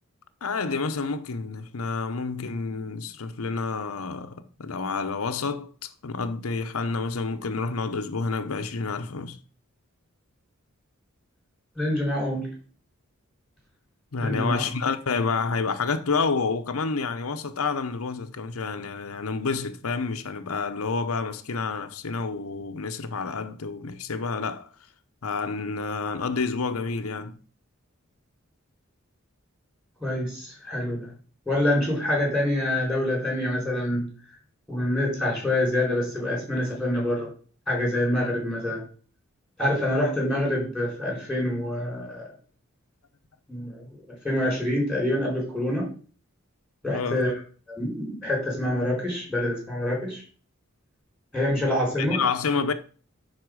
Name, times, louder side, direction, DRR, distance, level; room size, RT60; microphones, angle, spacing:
voice 1, 0.4-9.4 14.1-24.7 25.2-27.4 46.9-47.3 52.0-52.7, left 4 dB, 85° left, 0.8 m, -29 dB
voice 2, 11.8-12.5 14.2-14.7 30.0-31.1 31.5-34.0 34.7-37.3 37.7-38.8 39.6-42.3 43.5-44.0 44.2-45.9 46.8-47.3 47.7-50.2 51.3-52.2, left 1 dB, 5° right, 4.3 m, -26 dB
9.7 x 4.3 x 6.3 m
head